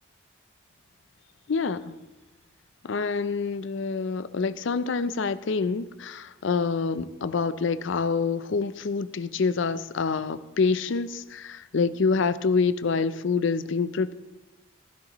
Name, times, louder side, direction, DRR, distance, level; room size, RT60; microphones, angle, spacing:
voice 1, 1.5-2.0 2.8-14.1, left 4 dB, 65° left, 14 dB, 0.5 m, -26 dB
15.5 x 11.0 x 3.0 m, 1.1 s
head